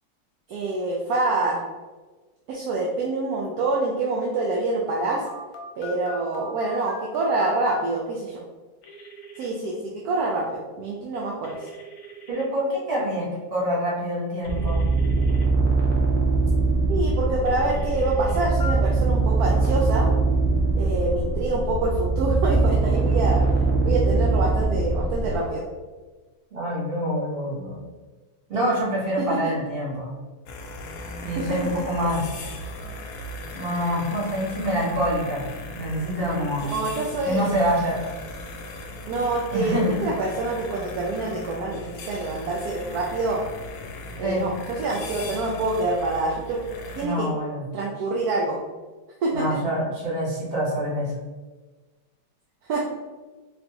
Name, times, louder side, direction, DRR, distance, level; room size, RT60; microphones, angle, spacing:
voice 1, 0.5-1.6 2.5-5.2 5.8-8.4 9.4-11.7 16.9-20.1 20.7-23.4 23.8-25.7 29.2-29.5 31.3-31.8 36.6-37.5 39.1-43.4 44.2-46.6 47.0-47.3 47.7-48.6 49.2-49.6 52.6-52.8, right 2 dB, 70° right, -2 dB, 1.0 m, -26 dB
Telephone, 5.3-7.8 8.8-9.5 11.4-12.4 14.4-15.5 17.5-18.7, left 2 dB, 60° left, 1.1 m, -40 dB
voice 2, 12.3-13.2 13.5-14.8 26.5-27.8 28.5-30.1 31.2-32.2 33.5-35.4 35.8-36.7 37.2-38.0 39.5-40.0 44.2-44.4 47.0-47.6 49.3-51.1, equal, 35° right, -7 dB, 1.5 m, -26 dB
sound 1, 14.4-25.4, right 3 dB, 85° right, 0.4 m, -22 dB
sound 2, 30.4-47.1, left 2 dB, 75° left, 0.7 m, -38 dB
4.0 x 3.3 x 2.9 m, 1.3 s
omnidirectional pair, 1.9 m